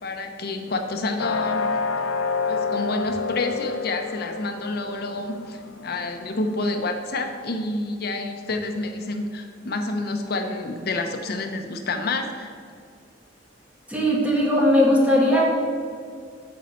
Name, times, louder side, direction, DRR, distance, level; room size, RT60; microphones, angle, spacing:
voice 1, 0.0-1.7 2.5-12.5, left 2 dB, 50° left, 5 dB, 0.7 m, -28 dB
sound 1, 1.2-6.8, left 5 dB, 85° left, 0.4 m, -29 dB
voice 2, 13.9-15.5, equal, 5° right, -3 dB, 1.2 m, -18 dB
7.4 x 4.1 x 6.3 m, 2.2 s
head